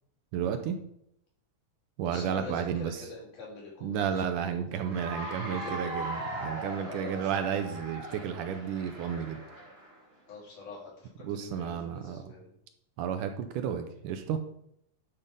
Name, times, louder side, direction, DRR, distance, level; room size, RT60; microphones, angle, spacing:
voice 1, 0.3-0.8 2.0-3.0 3.8-9.4 11.2-12.3 13.0-14.4, right 8 dB, 80° right, 7 dB, 2.1 m, -32 dB
voice 2, 2.0-5.0 5.5-5.9 6.8-7.5 10.3-12.5, left 3 dB, 65° left, -5 dB, 5.0 m, -45 dB
Cheering / Applause, 4.8-10.0, right 1 dB, 30° right, 1.2 m, -39 dB
11.0 x 5.5 x 5.2 m, 0.74 s
omnidirectional pair, 3.9 m